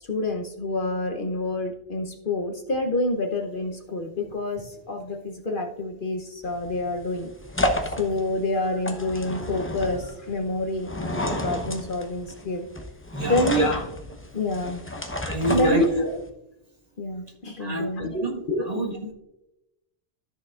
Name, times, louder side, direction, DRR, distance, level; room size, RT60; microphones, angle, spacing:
voice 1, 0.0-7.3 7.8-12.7 13.3-13.9 14.3-14.8 15.5-16.2 17.0-18.2 18.5-18.8, left 1 dB, 50° left, 4 dB, 1.0 m, -27 dB
sound 1, 6.4-16.3, left 1 dB, 15° left, 0.7 m, -31 dB
voice 2, 13.1-13.5 15.3-16.0 17.6-19.1, right 1 dB, 35° right, 1 dB, 1.4 m, -28 dB
13.5 x 6.5 x 2.4 m, 0.91 s
omnidirectional pair, 1.2 m